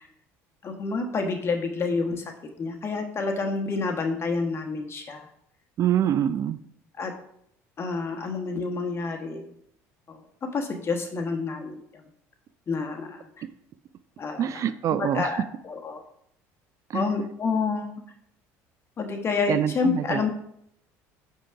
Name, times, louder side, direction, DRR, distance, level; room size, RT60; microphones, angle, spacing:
voice 1, 0.6-2.2 2.6-5.3 7.0-7.1 7.8-9.5 10.1-10.2 10.5-12.0 12.7-13.4 14.2-14.6 15.0-16.0 16.9-17.9 19.0-20.3, left 4 dB, 35° left, 4 dB, 1.2 m, -28 dB
voice 2, 5.8-6.6 14.4-15.3 16.9-17.0 19.5-20.2, right 10 dB, 45° right, 14 dB, 0.3 m, -25 dB
5.1 x 3.7 x 5.7 m, 0.71 s
supercardioid pair, 90°, 7 cm